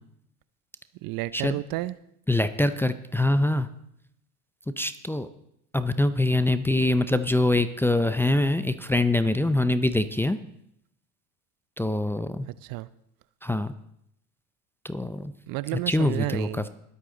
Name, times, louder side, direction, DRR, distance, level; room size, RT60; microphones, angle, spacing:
voice 1, 1.0-2.0 12.6-12.9 15.5-16.7, right 19 dB, 50° right, 17 dB, 0.6 m, -31 dB
voice 2, 2.3-3.7 4.8-5.3 5.7-10.4 11.8-12.5 13.4-13.7 14.8-15.3 15.9-16.7, left 1 dB, 5° left, 11 dB, 0.6 m, -24 dB
21.0 x 8.2 x 3.9 m, 0.75 s
hypercardioid pair, 80°, 45 cm